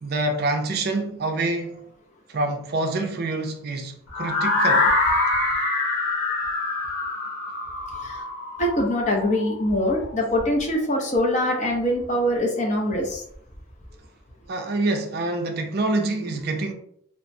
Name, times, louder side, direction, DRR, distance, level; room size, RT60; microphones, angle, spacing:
voice 1, 0.0-1.9 2.3-4.9 14.5-16.7, right 2 dB, 50° right, 0.4 m, -26 dB
sound 1, 4.1-10.0, left 2 dB, 85° left, 0.9 m, -24 dB
voice 2, 8.6-13.2, left 1 dB, 35° left, 0.6 m, -23 dB
2.8 x 2.1 x 2.6 m
head